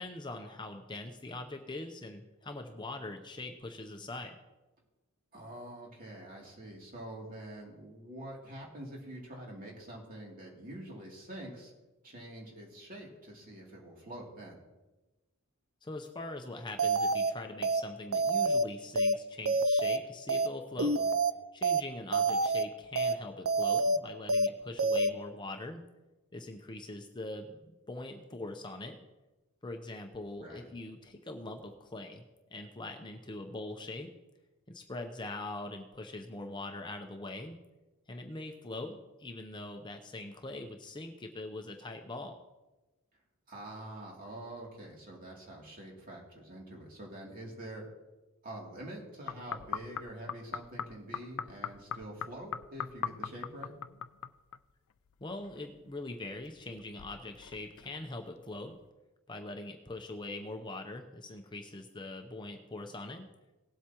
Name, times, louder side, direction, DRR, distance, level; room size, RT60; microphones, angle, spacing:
voice 1, 0.0-4.4 15.8-21.0 21.5-25.8 26.3-27.6 27.9-29.0 29.6-32.2 32.5-34.1 34.7-37.6 38.1-42.3 55.2-58.8 59.3-63.3, left 2 dB, 20° left, 4 dB, 0.7 m, -42 dB
voice 2, 5.3-11.7 12.0-14.6 20.7-21.1 30.4-30.7 43.5-47.8 48.4-53.7, right 1 dB, 40° right, -2 dB, 2.8 m, -46 dB
sound 1, 16.8-17.3 17.6-17.8 18.1-18.6 18.9-19.1 19.4-20.0 20.3-20.5 20.8-21.3 21.6-21.8 22.1-22.6 22.9-23.1 23.4-24.0 24.3-24.5 24.8-25.1, right 2 dB, 70° right, 0.6 m, -27 dB
sound 2, 49.3-54.7 55.0-56.0 56.3-58.2 58.8-58.9, left 7 dB, 70° left, 0.4 m, -41 dB
19.0 x 8.1 x 3.0 m, 1.1 s
head